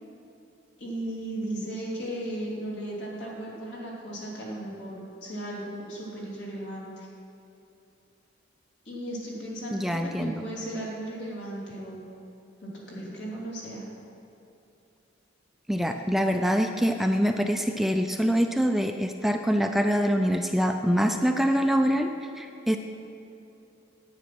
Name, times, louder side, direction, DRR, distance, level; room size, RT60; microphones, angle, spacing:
voice 1, 0.8-7.1 8.8-12.0 12.6-13.8, right 1 dB, 70° left, -5 dB, 3.1 m, -36 dB
voice 2, 9.7-10.4 15.7-22.8, equal, ahead, 5 dB, 0.4 m, -25 dB
10.0 x 8.8 x 6.1 m, 2.8 s
head